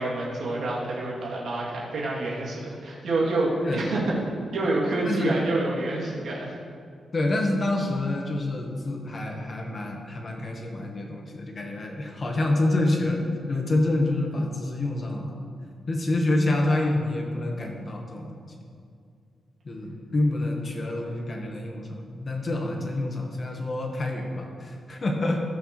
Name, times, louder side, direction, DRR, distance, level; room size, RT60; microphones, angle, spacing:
voice 1, 0.0-4.2 4.5-6.6, right 2 dB, 75° right, -5 dB, 2.8 m, -27 dB
voice 2, 5.0-5.4 7.1-13.2 13.5-15.4 15.9-18.3 19.6-25.4, left 2 dB, 35° left, 1 dB, 1.4 m, -27 dB
19.0 x 6.5 x 3.3 m, 2.3 s
wide cardioid pair, 165°, 0 cm